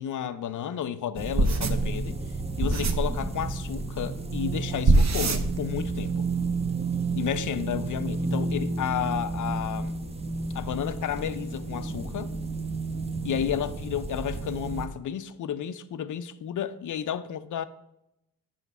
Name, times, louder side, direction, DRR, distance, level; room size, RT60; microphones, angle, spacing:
voice 1, 0.0-2.2 2.6-6.3 7.1-10.0 10.5-12.3 13.2-17.6, left 9 dB, 50° left, 0.5 m, -32 dB
sound 1, 1.1-14.9, right 3 dB, 15° right, 0.6 m, -32 dB
sound 2, 1.4-3.2 4.4-4.6 4.8-5.9 6.2-6.7, right 2 dB, 45° right, 0.8 m, -24 dB
6.0 x 5.1 x 5.4 m
cardioid pair, 75°, 38 cm